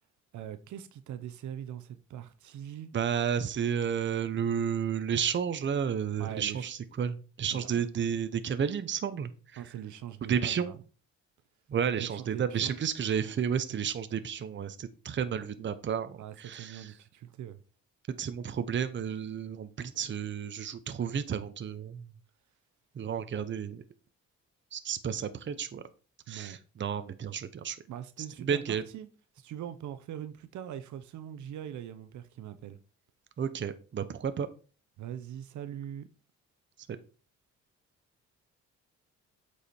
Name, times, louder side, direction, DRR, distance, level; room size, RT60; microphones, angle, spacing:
voice 1, 0.3-2.9 6.2-6.7 7.5-7.8 9.6-10.8 12.0-12.8 16.2-17.6 26.3-26.6 27.9-29.1 29.3-32.8 35.0-36.1, right 10 dB, 70° right, 0.8 m, -42 dB
voice 2, 2.9-9.6 10.3-10.7 11.7-16.9 18.2-22.1 22.9-23.8 24.7-25.8 26.3-27.8 28.4-28.8 33.4-34.5, right 7 dB, 40° right, 0.8 m, -32 dB
8.1 x 4.9 x 4.3 m
cardioid pair, 90°, 30 cm